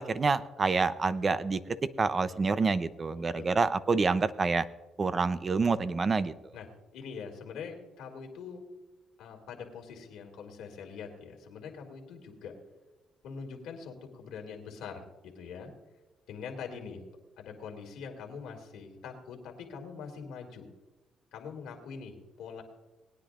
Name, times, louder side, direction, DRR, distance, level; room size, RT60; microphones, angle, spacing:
voice 1, 0.0-4.6 5.0-6.3, right 4 dB, 35° right, 14 dB, 0.7 m, -27 dB
voice 2, 6.9-8.6 9.2-12.5 13.2-15.7 16.3-17.0 17.4-20.7 21.3-22.6, left 6 dB, 90° left, 3 dB, 2.4 m, -43 dB
20.0 x 10.0 x 2.5 m, 1.1 s
cardioid pair, 90°, 0 cm